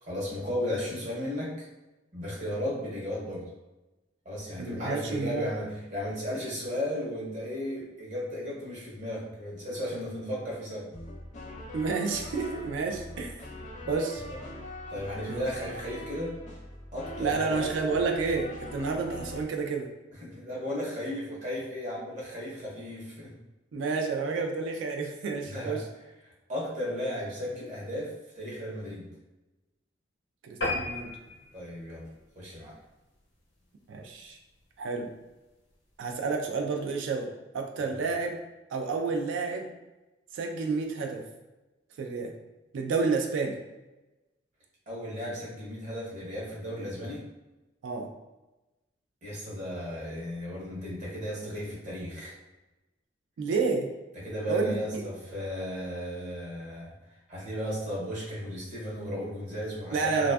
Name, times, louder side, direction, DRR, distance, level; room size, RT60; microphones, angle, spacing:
voice 1, 0.0-1.7 2.1-3.5 4.2-10.9 14.3-14.4 14.9-16.4 16.9-17.7 20.2-23.3 25.4-25.8 26.2-29.1 31.5-32.1 32.4-32.8 37.8-38.0 44.9-47.2 49.2-52.4 54.1-60.3, equal, 40° right, -5 dB, 0.8 m, -35 dB
voice 2, 4.6-5.5 11.7-13.4 13.9-14.2 15.3-15.4 17.2-19.9 23.7-25.8 30.4-31.1 33.9-34.4 34.8-35.1 36.0-38.4 38.7-39.7 40.3-41.2 42.0-42.4 42.7-43.6 47.8-48.1 53.4-53.9 54.5-55.0 59.9-60.3, right 4 dB, 85° right, 3 dB, 0.3 m, -30 dB
sound 1, 10.9-19.4, left 1 dB, 40° left, 0.4 m, -42 dB
sound 2, 30.6-33.4 33.8-34.0 34.5-34.6 34.9-35.0 35.2-35.3, left 2 dB, 85° left, 0.7 m, -35 dB
2.5 x 2.2 x 2.2 m, 1.1 s
head